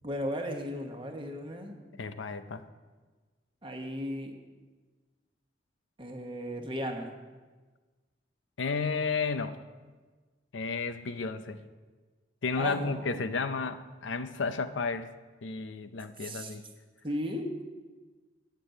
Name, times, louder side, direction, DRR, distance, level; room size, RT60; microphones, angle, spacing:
voice 1, 0.0-1.8 3.6-4.3 6.0-7.1 12.6-13.2 16.2-16.5 17.0-17.5, equal, 30° right, 3 dB, 1.2 m, -35 dB
voice 2, 2.0-2.6 8.6-9.6 10.5-11.6 12.4-15.1 15.4-16.6, left 4 dB, 85° left, 10 dB, 0.6 m, -32 dB
9.1 x 6.8 x 8.0 m, 1.3 s
head